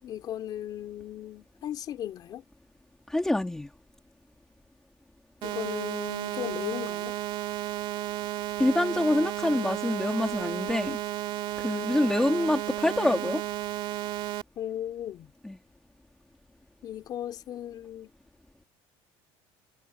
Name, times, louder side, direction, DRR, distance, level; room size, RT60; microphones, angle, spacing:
voice 1, 0.0-2.4 5.4-7.2 14.6-15.3 16.8-18.1, left 11 dB, 35° left, 3.9 m, -36 dB
voice 2, 3.1-3.7 8.6-11.0 11.6-13.4 15.4-15.6, left 1 dB, 5° left, 2.2 m, -26 dB
sound 1, 5.4-14.4, right 14 dB, 45° right, 2.3 m, -33 dB
cardioid pair, 180°, 11 cm